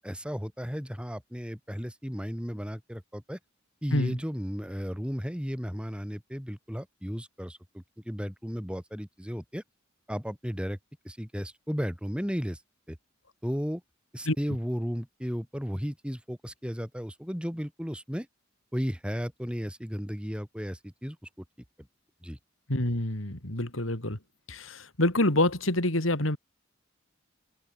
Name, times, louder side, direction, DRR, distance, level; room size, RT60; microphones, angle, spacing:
voice 1, 0.0-3.4 3.8-9.6 10.1-10.8 11.0-12.6 12.9-13.0 13.4-13.8 14.1-18.3 18.7-21.2 22.2-22.4, equal, 5° right, 6.6 m, -34 dB
voice 2, 22.7-24.2 24.5-26.4, left 1 dB, 75° left, 4.3 m, -27 dB
head